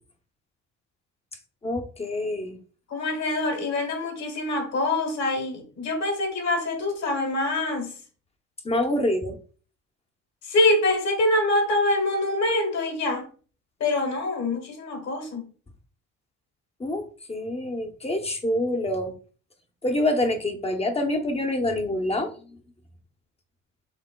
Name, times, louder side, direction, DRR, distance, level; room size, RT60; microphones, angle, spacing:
voice 1, 1.6-2.6 8.6-9.4 16.8-19.1 19.8-22.6, left 1 dB, 20° left, 0.8 m, -26 dB
voice 2, 2.9-8.0 10.4-13.3 13.8-15.4, left 2 dB, 60° left, 1.6 m, -25 dB
5.9 x 3.5 x 2.3 m
cardioid pair, 85°, 30 cm